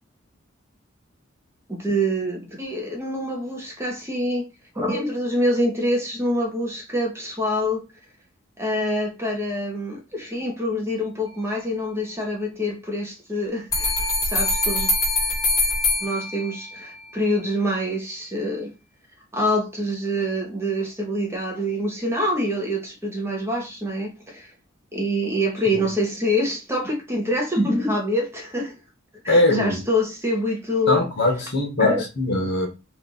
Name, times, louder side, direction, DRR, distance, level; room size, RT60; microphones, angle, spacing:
voice 1, 1.7-4.5 4.7-7.8 8.6-13.9 14.2-14.9 16.0-18.7 19.3-24.5 24.9-28.7 29.2-31.0 31.8-32.0, equal, 15° right, 0.8 m, -25 dB
sound 1, 13.7-16.8, left 2 dB, 20° left, 1.2 m, -23 dB
voice 2, 29.3-29.8 30.9-32.7, left 2 dB, 60° left, 1.1 m, -21 dB
3.1 x 2.4 x 3.8 m
head